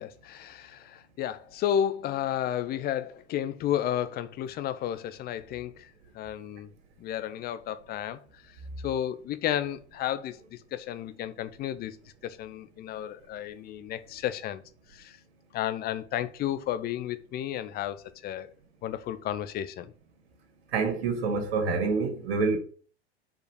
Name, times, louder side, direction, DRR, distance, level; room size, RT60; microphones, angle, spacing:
voice 1, 0.0-6.7 7.0-12.0 12.2-14.6 14.9-15.2 15.5-18.5 18.8-19.9, left 10 dB, 25° left, 0.8 m, -32 dB
voice 2, 20.7-22.6, right 4 dB, 55° right, 2.6 m, -27 dB
6.5 x 5.2 x 6.7 m
figure-of-eight pair, 90°, 35 cm